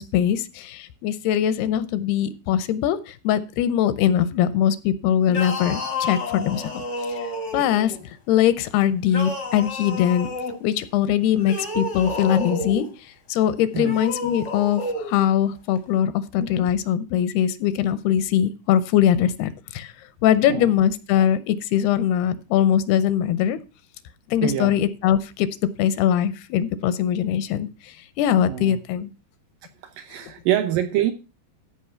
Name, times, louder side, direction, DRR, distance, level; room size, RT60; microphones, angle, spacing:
voice 1, 0.0-7.2 7.5-7.9 8.3-10.3 10.6-19.9 20.2-23.6 24.3-29.1 30.2-30.3, left 10 dB, 80° left, 2.7 m, -22 dB
sound 1, 5.3-8.0 9.1-10.6 11.4-12.9 13.8-15.2, left 2 dB, 55° left, 0.8 m, -30 dB
voice 2, 24.4-24.7 28.5-28.8 29.8-31.1, right 12 dB, 75° right, 2.1 m, -25 dB
13.5 x 5.1 x 5.7 m
omnidirectional pair, 4.6 m